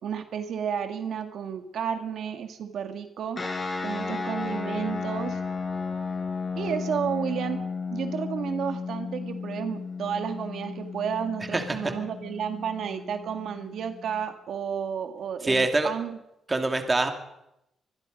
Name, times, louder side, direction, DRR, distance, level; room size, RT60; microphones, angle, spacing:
voice 1, 0.0-3.4 3.8-5.4 6.6-7.6 7.9-16.2, right 8 dB, 65° right, 7 dB, 1.9 m, -32 dB
sound 1, 3.3-14.3, left 4 dB, 25° left, 4.8 m, -34 dB
voice 2, 15.4-15.9 16.5-17.1, right 2 dB, 20° right, 5 dB, 2.5 m, -24 dB
24.5 x 21.0 x 5.4 m, 0.83 s
cardioid pair, 140°, 0 cm